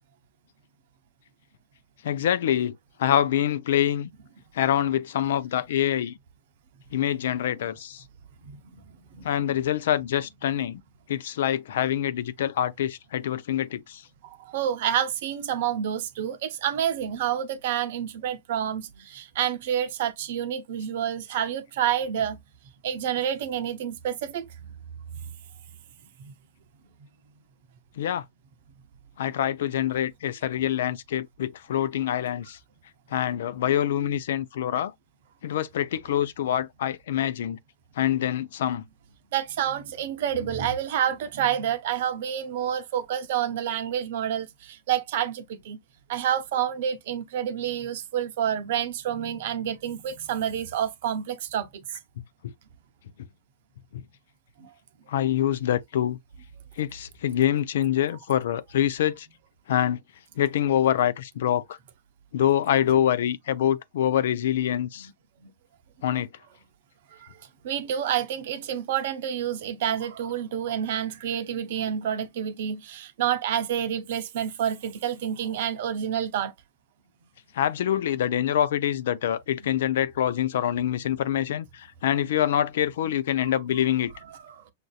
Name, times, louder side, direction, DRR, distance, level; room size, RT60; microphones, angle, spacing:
voice 1, 2.0-4.1 4.5-6.1 6.9-8.0 9.2-10.8 11.1-14.0 28.0-28.2 29.2-32.6 33.1-34.9 35.4-37.6 38.0-38.8 52.4-52.5 53.9-54.0 55.1-56.2 56.8-59.3 59.7-60.0 60.4-61.8 62.3-65.1 66.0-66.3 77.5-84.1, left 10 dB, 65° left, 0.4 m, -25 dB
voice 2, 9.1-9.6 14.2-22.4 22.8-24.5 26.2-26.3 39.3-45.8 46.1-51.8 54.6-54.7 65.0-65.1 65.4-65.5 67.2-67.3 67.6-76.5 79.6-79.7 80.8-80.9 84.4-84.6, right 9 dB, 60° right, 0.7 m, -28 dB
6.5 x 2.6 x 2.3 m
hypercardioid pair, 100°, 0 cm